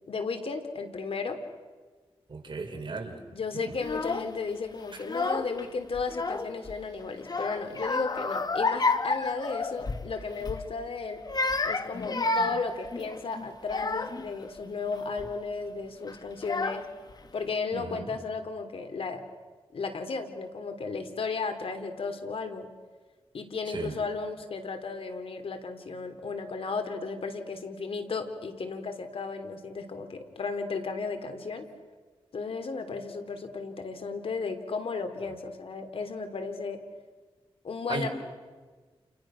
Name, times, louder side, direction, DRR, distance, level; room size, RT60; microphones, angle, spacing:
voice 1, 0.1-1.4 3.3-11.2 11.6-16.8 17.3-19.2 19.7-22.7 23.3-31.7 32.3-36.8 37.6-38.1, left 4 dB, 75° left, 7 dB, 3.3 m, -34 dB
voice 2, 2.3-3.2 3.5-3.7 17.7-18.1 23.7-23.9 37.9-38.1, right 3 dB, 55° right, 3 dB, 5.0 m, -35 dB
Child speech kid speaking / Crying sobbing, 3.8-4.3 5.0-5.6 5.9-6.8 7.2-10.1 10.4-10.7 11.2-14.3 14.9-15.3 16.1-16.2 16.4-17.1, left 3 dB, 45° left, 1.7 m, -30 dB
30.0 x 29.5 x 6.4 m, 1.4 s
cardioid pair, 70°, 10 cm